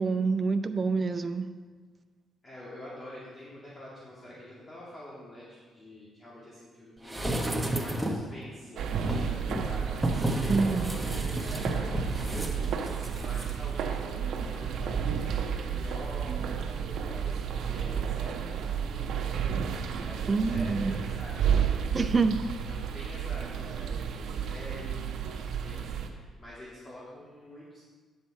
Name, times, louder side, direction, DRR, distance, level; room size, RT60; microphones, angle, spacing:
voice 1, 0.0-1.5 10.5-10.9 20.3-21.0 21.9-22.4, right 4 dB, 35° right, 8 dB, 0.6 m, -26 dB
voice 2, 2.4-5.5 5.7-12.7 13.1-19.6 20.0-22.0 22.7-27.8, left 1 dB, 35° left, -8 dB, 2.5 m, -46 dB
sound 1, 7.1-8.3 9.0-13.5 13.8-13.9, right 1 dB, 5° right, 1.1 m, -32 dB
sound 2, 8.8-26.1, right 7 dB, 75° right, 0.9 m, -32 dB
10.0 x 7.4 x 4.4 m, 1.5 s
cardioid pair, 90°, 0 cm